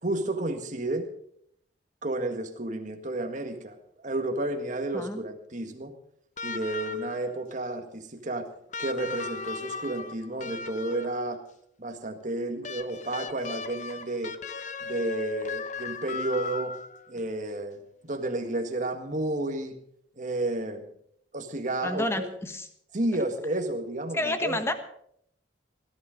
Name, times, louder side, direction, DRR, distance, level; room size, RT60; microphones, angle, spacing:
voice 1, 0.0-1.1 2.0-5.9 6.4-8.5 8.8-11.4 11.8-14.4 14.8-16.7 17.1-19.8 20.2-20.9 21.3-22.3 22.9-24.6, right 1 dB, 45° right, 5 dB, 1.8 m, -31 dB
sound 1, 6.4-7.3 8.7-11.3 12.6-17.1 18.4-18.5, left 4 dB, 40° left, 0.8 m, -37 dB
voice 2, 21.8-22.7 24.1-24.7, left 1 dB, 15° left, 8 dB, 1.3 m, -29 dB
17.5 x 12.0 x 5.2 m, 0.68 s
head